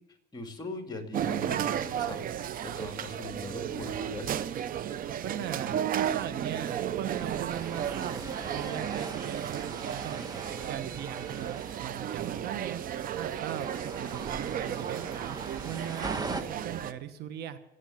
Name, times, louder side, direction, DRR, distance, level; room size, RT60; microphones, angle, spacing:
voice 1, 0.3-2.2 2.6-4.3, left 2 dB, 25° left, 4 dB, 2.4 m, -40 dB
sound 1, 1.1-16.9, right 10 dB, 55° right, 0.7 m, -34 dB
voice 2, 5.2-8.3 8.5-10.3 10.7-12.8 13.1-15.4 15.6-17.6, right 10 dB, 75° right, 11 dB, 1.2 m, -39 dB
sound 2, 7.1-16.4, right 3 dB, 25° right, 1.3 m, -41 dB
17.5 x 8.2 x 7.7 m, 0.94 s
cardioid pair, 110°, 17 cm